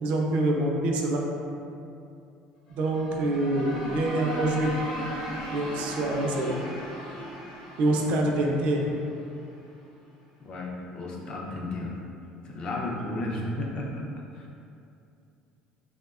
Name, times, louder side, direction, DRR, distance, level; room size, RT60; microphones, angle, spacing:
voice 1, 0.0-1.2 2.7-4.8 5.5-6.6 7.8-8.8, right 1 dB, 60° right, 0 dB, 0.3 m, -26 dB
sound 1, 2.7-9.5, equal, 90° left, 0.9 m, -37 dB
voice 2, 10.4-12.0 12.4-14.0 14.3-14.6, left 2 dB, 35° left, -2 dB, 0.4 m, -33 dB
2.7 x 2.1 x 2.3 m, 2.5 s
cardioid pair, 125°, 2 cm